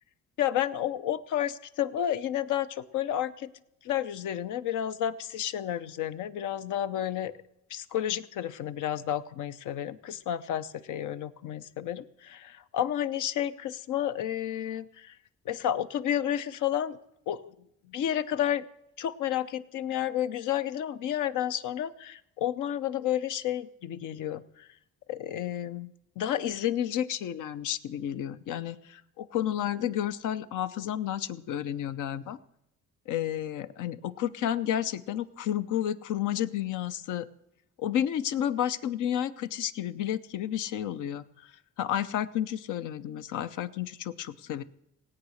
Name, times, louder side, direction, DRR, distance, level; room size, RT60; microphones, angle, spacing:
voice 1, 0.4-3.5 3.8-7.3 7.7-15.2 15.5-17.0 17.3-17.5 17.9-18.6 19.0-24.7 25.1-32.4 33.1-37.3 37.8-41.5 41.8-44.6, left 10 dB, 85° left, 12 dB, 0.8 m, -31 dB
17.5 x 8.5 x 6.4 m, 0.79 s
cardioid pair, 90°, 30 cm